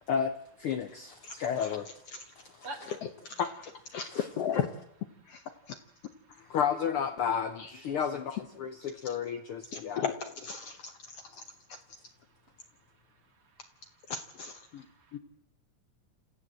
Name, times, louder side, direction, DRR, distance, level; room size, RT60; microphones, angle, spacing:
voice 1, 0.1-1.9 2.4-2.7 3.4-3.5 4.1-4.2 6.4-10.1, left 7 dB, 80° left, 8 dB, 1.2 m, -32 dB
voice 2, 1.2-1.8 2.1-2.2 3.2-3.4 3.9-4.7 5.3-5.8 7.6-7.7 8.3-8.4 9.0-9.1 9.7-11.4 11.7-11.8 14.1-14.9 15.1-15.2, left 7 dB, 65° left, 8 dB, 1.7 m, -36 dB
voice 3, 2.2-2.9 13.3-14.1 14.6-15.2, right 2 dB, 45° right, 6 dB, 2.8 m, -48 dB
27.5 x 14.5 x 7.6 m, 0.76 s
omnidirectional pair, 3.8 m